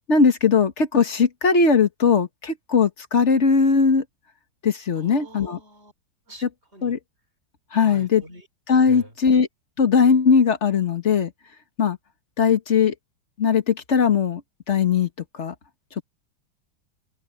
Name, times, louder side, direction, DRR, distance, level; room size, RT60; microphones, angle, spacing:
voice 1, 0.1-4.0 4.6-5.6 6.4-6.5 6.8-7.0 7.7-8.2 8.7-9.5 9.8-11.3 11.8-12.0 12.4-12.9 13.4-14.4 14.7-15.1 15.3-15.5, left 5 dB, 35° left, 1.6 m, -19 dB
voice 2, 4.9-5.9 6.3-6.4 6.7-6.9 7.8-8.4 8.9-9.4, right 1 dB, 30° right, 4.8 m, -43 dB
omnidirectional pair, 2.3 m